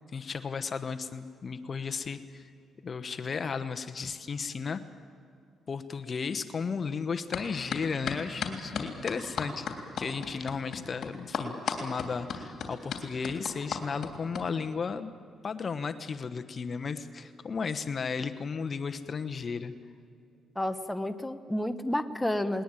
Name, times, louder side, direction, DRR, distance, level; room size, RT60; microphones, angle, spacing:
voice 1, 0.1-2.5 2.8-4.8 5.7-15.1 15.4-19.7, left 5 dB, 40° left, 10 dB, 1.0 m, -34 dB
sound 1, 7.3-7.4 7.7-14.4, left 6 dB, 60° left, 3.2 m, -34 dB
voice 2, 20.5-22.6, left 1 dB, 5° left, 9 dB, 1.0 m, -30 dB
20.5 x 19.5 x 9.0 m, 2.4 s
cardioid pair, 90°, 0 cm